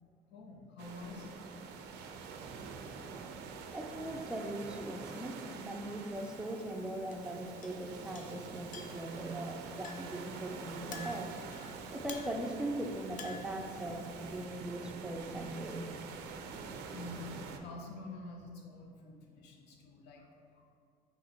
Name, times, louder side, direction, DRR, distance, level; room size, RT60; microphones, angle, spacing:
voice 1, 0.3-1.4 16.9-20.7, left 2 dB, 85° left, 0 dB, 0.8 m, -47 dB
sound 1, 0.8-17.6, right 5 dB, 85° right, 0.4 m, -46 dB
voice 2, 3.7-11.3 11.9-15.9, right 1 dB, 5° right, 3 dB, 0.4 m, -40 dB
Chink clink, 6.1-14.5, left 5 dB, 50° left, 0.5 m, -53 dB
3.9 x 3.0 x 4.3 m, 2.3 s
cardioid pair, 110°, 17 cm